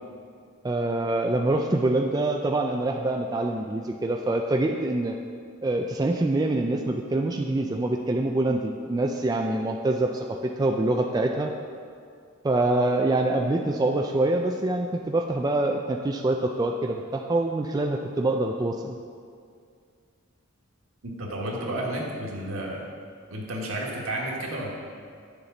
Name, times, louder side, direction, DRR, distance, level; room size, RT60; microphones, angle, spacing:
voice 1, 0.6-5.2 5.6-11.5 12.4-19.0, right 2 dB, 20° right, 2 dB, 0.3 m, -25 dB
voice 2, 21.0-22.8 23.3-24.7, right 1 dB, 70° right, -2 dB, 1.6 m, -31 dB
9.7 x 7.0 x 3.9 m, 2.2 s
head